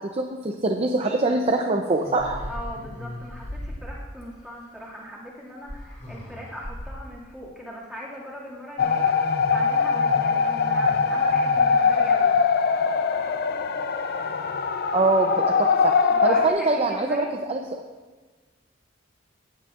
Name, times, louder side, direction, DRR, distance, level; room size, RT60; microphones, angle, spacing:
voice 1, 0.1-2.4 14.9-15.9 16.2-17.6, right 2 dB, 35° right, 3 dB, 0.6 m, -23 dB
sound 1, 1.8-4.3 5.7-7.1, left 1 dB, 35° left, 2.3 m, -37 dB
voice 2, 2.5-12.3 16.1-17.3, equal, 5° right, -5 dB, 2.1 m, -39 dB
sound 2, 8.8-16.5, left 5 dB, 55° left, 0.5 m, -22 dB
17.0 x 8.5 x 2.5 m, 1.3 s
head